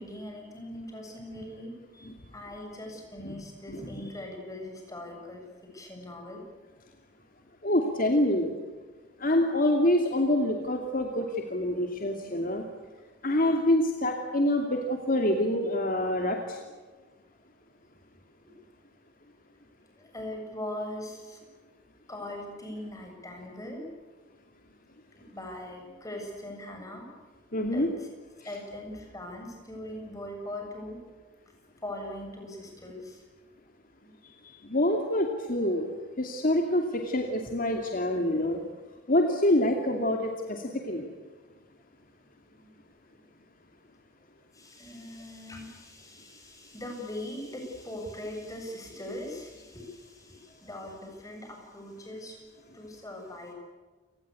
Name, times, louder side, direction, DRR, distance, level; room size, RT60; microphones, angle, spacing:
voice 1, 0.0-5.4 5.7-6.4 13.3-13.4 20.0-21.4 22.1-23.8 25.2-27.1 27.7-28.1 28.4-31.0 31.8-33.2 44.5-52.4 52.7-53.5, left 1 dB, 20° left, 2 dB, 7.4 m, -40 dB
voice 2, 7.6-8.5 9.2-12.6 13.2-16.6 27.5-27.9 34.7-35.9 36.2-38.6 39.1-41.1, left 1 dB, 50° left, 3 dB, 2.5 m, -26 dB
30.0 x 19.5 x 8.4 m, 1.4 s
head